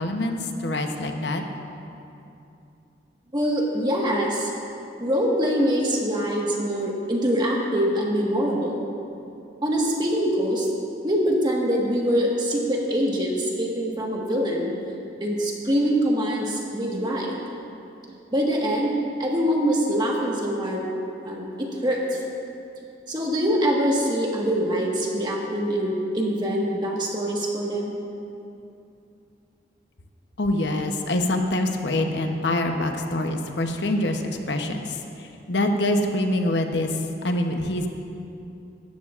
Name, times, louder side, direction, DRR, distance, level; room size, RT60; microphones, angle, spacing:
voice 1, 0.0-1.4 30.4-36.9 37.2-37.9, left 1 dB, 75° left, 4 dB, 0.9 m, -25 dB
voice 2, 3.3-4.5 5.0-8.8 9.6-10.7 11.0-14.7 15.2-17.4 18.3-18.9 19.2-20.8 21.2-22.2 23.1-27.9, equal, 25° right, -2 dB, 1.5 m, -24 dB
17.0 x 13.5 x 2.5 m, 2.7 s
head